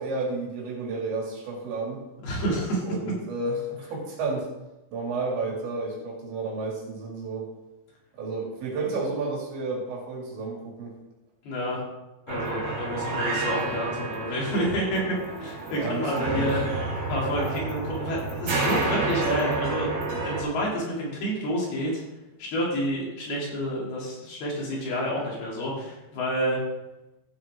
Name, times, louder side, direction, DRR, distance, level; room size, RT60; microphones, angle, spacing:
voice 1, 0.0-2.0 2.9-4.5 4.9-7.5 8.2-10.9 15.7-16.5, right 3 dB, 80° right, -3 dB, 5.1 m, -31 dB
voice 2, 2.2-2.8 11.4-11.8 12.3-16.6 17.1-22.0 22.4-26.6, equal, 60° left, -5 dB, 5.1 m, -29 dB
sound 1, 12.3-20.4, right 3 dB, 60° right, 6.5 m, -30 dB
15.0 x 8.1 x 3.8 m, 0.98 s
omnidirectional pair, 5.1 m